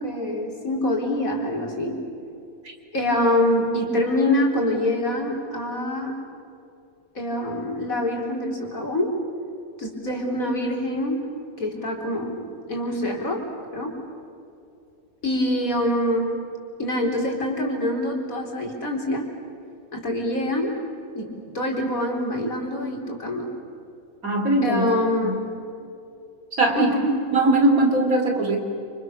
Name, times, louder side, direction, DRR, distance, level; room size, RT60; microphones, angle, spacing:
voice 1, 0.0-2.0 2.9-6.1 7.1-9.1 9.8-11.2 11.6-13.4 13.7-14.0 15.2-16.3 16.8-19.3 19.9-20.8 21.1-23.5 24.6-25.4 26.8-27.1, left 1 dB, 70° left, 0 dB, 4.9 m, -25 dB
voice 2, 24.2-24.9 25.2-25.4 26.6-26.9 27.3-28.6, right 2 dB, 75° right, 3 dB, 4.3 m, -20 dB
29.5 x 28.0 x 6.9 m, 2.7 s
omnidirectional pair, 1.5 m